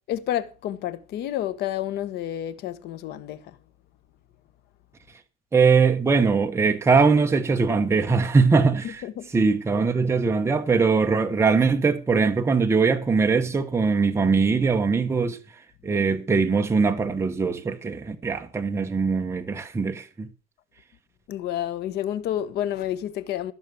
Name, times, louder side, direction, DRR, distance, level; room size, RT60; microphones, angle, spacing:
voice 1, 0.1-3.6 8.8-9.3 15.9-16.1 21.3-23.5, left 11 dB, 80° left, 1.2 m, -30 dB
voice 2, 5.5-9.0 9.3-15.4 15.8-20.3, right 4 dB, 15° right, 1.1 m, -21 dB
14.5 x 6.7 x 6.9 m
cardioid pair, 165°, 17 cm